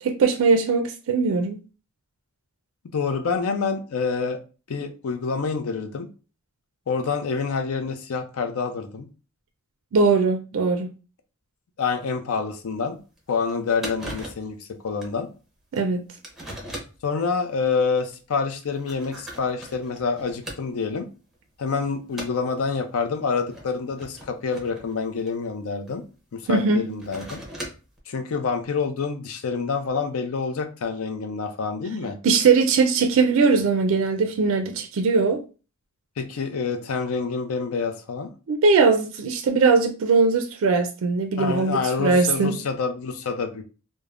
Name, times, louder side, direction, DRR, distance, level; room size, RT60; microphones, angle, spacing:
voice 1, 0.0-1.6 9.9-10.9 15.7-16.0 26.5-26.9 32.2-35.4 38.5-42.6, right 4 dB, 65° right, 0.4 m, -20 dB
voice 2, 2.9-4.4 4.7-6.1 6.9-9.1 11.8-13.0 13.3-14.6 14.8-15.3 17.0-21.1 21.6-26.0 26.3-27.4 28.1-32.2 36.2-38.3 41.4-43.6, left 5 dB, 70° left, 0.5 m, -27 dB
sound 1, 12.7-12.8 13.2-13.3 13.5-13.6 13.8-14.5 15.0-15.2 15.8-15.9 16.2-17.1 17.9-18.0 18.6-20.9 21.3-21.7 22.1-22.5 23.4-25.9 26.8-28.0, equal, ahead, 0.6 m, -38 dB
3.3 x 2.0 x 2.4 m
head